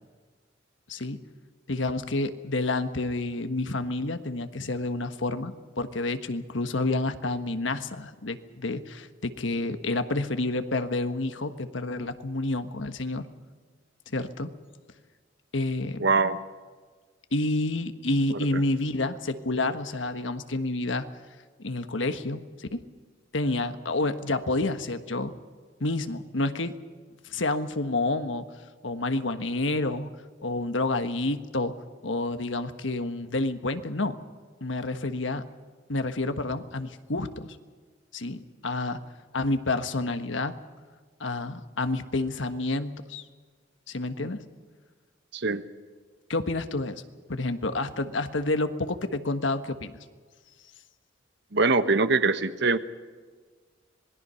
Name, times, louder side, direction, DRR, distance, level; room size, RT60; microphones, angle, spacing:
voice 1, 1.7-13.2 14.1-14.5 15.5-16.0 17.3-21.1 21.6-22.8 23.3-25.3 25.8-26.7 27.2-28.4 28.8-30.1 30.4-31.7 32.0-34.2 34.6-35.4 35.9-37.6 38.1-39.0 39.3-40.5 41.2-43.2 43.9-44.4 46.3-47.0 47.3-49.9, left 2 dB, 80° left, 9 dB, 1.5 m, -29 dB
voice 2, 16.0-16.4 18.3-18.4 45.3-45.6 51.5-52.8, right 3 dB, 65° right, 11 dB, 1.2 m, -23 dB
26.5 x 20.5 x 5.7 m, 1.5 s
head